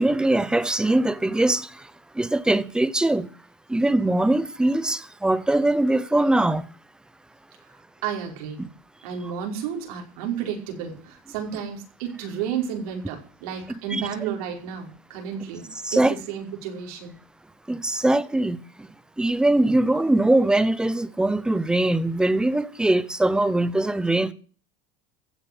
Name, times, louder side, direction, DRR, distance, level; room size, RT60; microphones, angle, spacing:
voice 1, 0.0-1.9 2.1-3.3 3.7-6.6 8.6-8.7 13.9-14.1 15.8-16.1 17.7-18.9 19.2-24.3, right 1 dB, 5° right, 0.7 m, -22 dB
voice 2, 8.0-8.6 9.0-15.7 15.9-17.1, right 8 dB, 90° right, 5.3 m, -32 dB
15.5 x 7.1 x 9.3 m
cardioid pair, 145°, 18 cm